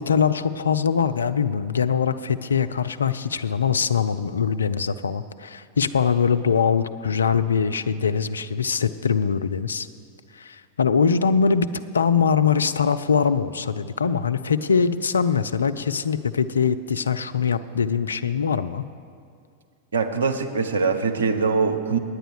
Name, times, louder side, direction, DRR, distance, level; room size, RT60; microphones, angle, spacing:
voice 1, 0.0-9.9 10.3-18.8, left 6 dB, 70° left, 12 dB, 0.4 m, -22 dB
voice 2, 19.9-22.0, right 5 dB, 70° right, 5 dB, 0.8 m, -23 dB
9.8 x 9.0 x 6.6 m, 2.3 s
figure-of-eight pair, 90°, 0 cm